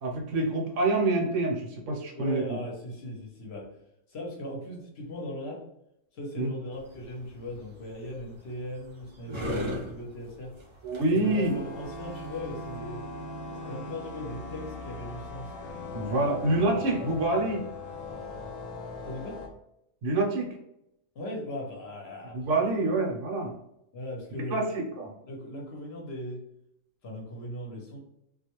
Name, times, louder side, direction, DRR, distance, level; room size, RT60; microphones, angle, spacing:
voice 1, 0.0-2.6 6.4-6.5 10.8-11.6 15.9-17.6 20.0-20.5 22.3-23.5 24.5-25.1, right 2 dB, 70° right, 0 dB, 1.0 m, -27 dB
voice 2, 2.1-3.7 4.1-5.6 6.1-10.5 11.1-13.0 13.6-15.5 16.2-17.1 19.0-19.4 21.1-22.7 23.9-24.7 25.2-26.4 27.0-28.0, left 1 dB, 60° left, -1 dB, 0.9 m, -38 dB
sound 1, 6.7-12.8, right 1 dB, 35° right, 0.4 m, -40 dB
sound 2, 11.2-19.5, left 2 dB, 85° left, 1.0 m, -39 dB
2.4 x 2.1 x 2.9 m, 0.81 s
omnidirectional pair, 1.3 m